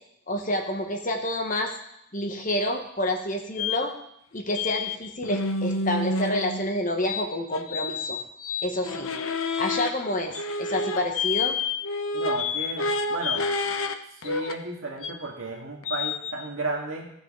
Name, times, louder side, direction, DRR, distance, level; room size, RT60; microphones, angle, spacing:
voice 1, 0.3-1.7 2.1-3.9 4.3-8.2 8.6-9.1 9.6-11.6, left 1 dB, 35° left, 3 dB, 1.1 m, -28 dB
sound 1, 3.6-3.8 4.5-5.0 5.2-6.7 7.0-9.9 10.3-13.9 14.2-14.5 15.0-15.1 15.8-16.3, left 4 dB, 75° left, 0.7 m, -29 dB
voice 2, 12.1-13.5 14.2-17.1, right 2 dB, 65° right, 0 dB, 1.9 m, -33 dB
15.0 x 6.3 x 3.7 m, 0.76 s
head